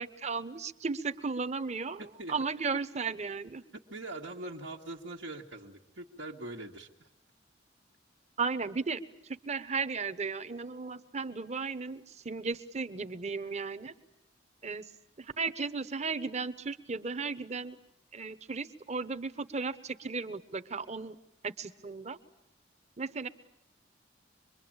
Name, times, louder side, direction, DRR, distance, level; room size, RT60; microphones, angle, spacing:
voice 1, 0.0-3.6 8.4-13.9 14.6-14.9 15.2-17.8 18.1-21.1 21.4-22.2 23.0-23.3, right 4 dB, 40° right, 11 dB, 1.0 m, -35 dB
voice 2, 2.0-2.3 3.9-7.1, right 2 dB, 85° right, -4 dB, 1.8 m, -42 dB
25.5 x 22.5 x 8.8 m, 0.79 s
head